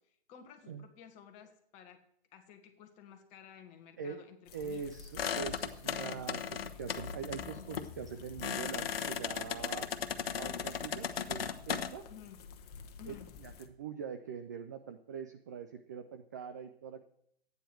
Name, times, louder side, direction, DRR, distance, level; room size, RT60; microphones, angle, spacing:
voice 1, 0.0-2.0 2.3-4.8 8.4-8.6 12.1-12.5 13.0-13.4, left 9 dB, 25° left, 5 dB, 1.5 m, -54 dB
sound 1, 4.5-13.7, left 6 dB, 40° left, 1.3 m, -53 dB
voice 2, 4.5-9.9 10.3-12.0 13.1-17.0, right 6 dB, 20° right, 8 dB, 0.3 m, -43 dB
sound 2, 5.2-11.9, left 7 dB, 70° left, 1.1 m, -37 dB
13.0 x 9.2 x 4.6 m, 0.71 s
hypercardioid pair, 145°, 30 cm